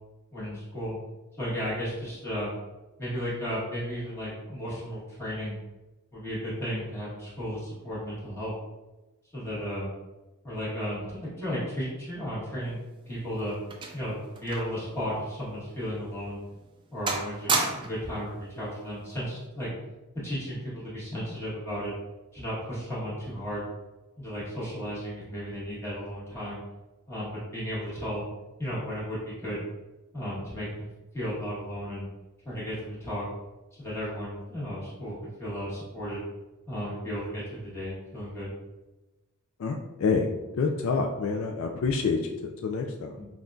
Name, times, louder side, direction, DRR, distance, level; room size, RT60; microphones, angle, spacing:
voice 1, 0.3-0.9 1.4-2.5 3.0-5.6 6.1-8.5 9.3-9.9 10.4-12.8 13.1-13.5 13.9-16.4 16.9-19.7 20.2-21.9 22.3-23.6 24.2-26.6 27.1-28.2 28.6-29.6 30.1-30.9 31.1-32.1 32.4-33.2 33.8-36.2 36.7-38.5 43.2-43.3, equal, 10° left, -10 dB, 1.5 m, -34 dB
sound 1, 12.8-14.9 15.2-15.3 16.0-16.1 16.5-16.8 17.1-18.1 19.1-19.4, right 3 dB, 20° right, 0.3 m, -32 dB
voice 2, 39.6-40.3 40.6-43.2, left 4 dB, 60° left, 3 dB, 0.3 m, -27 dB
5.5 x 2.3 x 2.6 m, 1.1 s
head